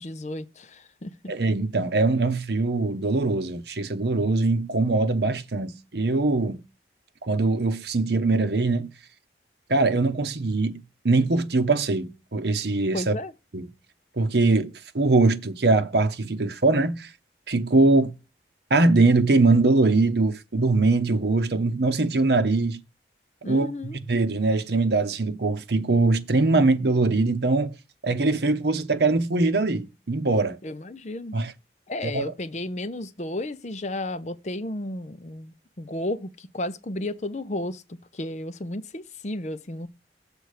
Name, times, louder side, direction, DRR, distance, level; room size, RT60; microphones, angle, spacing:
voice 1, 0.0-1.3 12.9-13.3 23.4-24.0 30.6-31.4 31.9-39.9, left 1 dB, 40° left, 0.7 m, -33 dB
voice 2, 1.3-6.6 7.3-8.9 9.7-13.1 13.5-13.7 14.2-17.1 17.5-18.1 18.7-22.8 23.5-27.7 28.0-30.6 31.3-31.5 32.0-32.3, right 3 dB, 65° right, 0.8 m, -22 dB
6.8 x 4.5 x 6.5 m
head